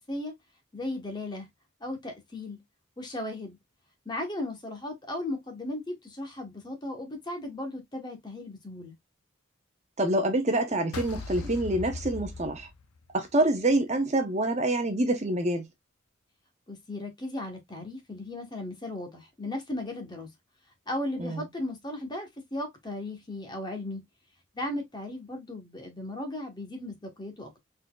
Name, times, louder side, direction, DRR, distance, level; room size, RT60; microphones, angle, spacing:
voice 1, 0.7-1.5 1.8-2.6 3.0-3.6 4.0-9.0 16.7-20.3 20.9-24.0 24.5-27.6, left 1 dB, 20° left, 1.0 m, -36 dB
voice 2, 10.0-12.7 13.1-15.6 21.2-21.4, right 1 dB, 30° right, 0.8 m, -26 dB
sound 1, 10.9-13.3, left 3 dB, 90° left, 0.6 m, -38 dB
4.1 x 3.9 x 2.3 m
head